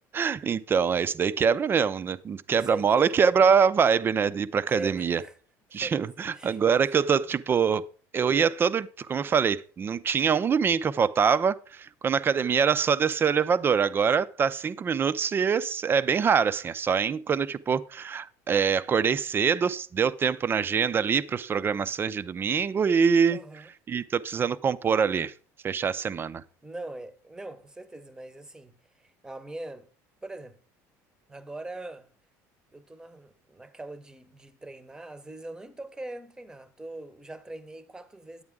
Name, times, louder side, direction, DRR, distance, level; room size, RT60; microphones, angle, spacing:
voice 1, 0.1-5.2 5.7-7.8 8.1-23.4 23.9-25.3 25.6-26.4, right 6 dB, 30° right, 0.5 m, -24 dB
voice 2, 2.3-3.3 4.7-5.4 5.7-6.0 6.3-7.4 12.2-12.4 23.3-23.7 26.6-29.9 30.2-30.6 31.3-32.1 32.7-38.4, right 2 dB, 10° right, 0.9 m, -42 dB
9.5 x 8.6 x 3.6 m
supercardioid pair, 115°, 8 cm